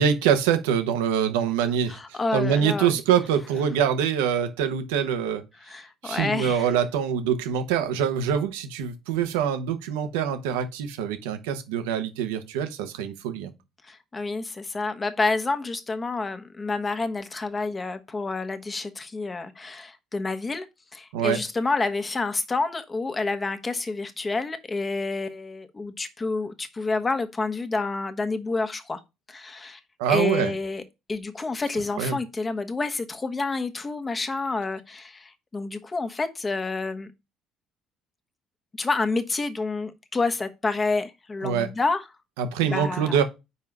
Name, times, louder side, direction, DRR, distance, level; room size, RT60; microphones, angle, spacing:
voice 1, 0.0-5.4 6.0-13.5 21.1-21.4 30.0-30.5 32.0-32.1 41.4-41.7 42.4-43.2, right 8 dB, 85° right, 1.0 m, -24 dB
voice 2, 1.9-2.9 5.6-6.7 13.8-20.7 20.9-29.0 29.3-29.8 30.1-30.8 31.1-37.1 38.8-42.1 42.6-43.2, left 3 dB, 30° left, 1.2 m, -28 dB
5.5 x 4.6 x 5.3 m
hypercardioid pair, 65°, 0 cm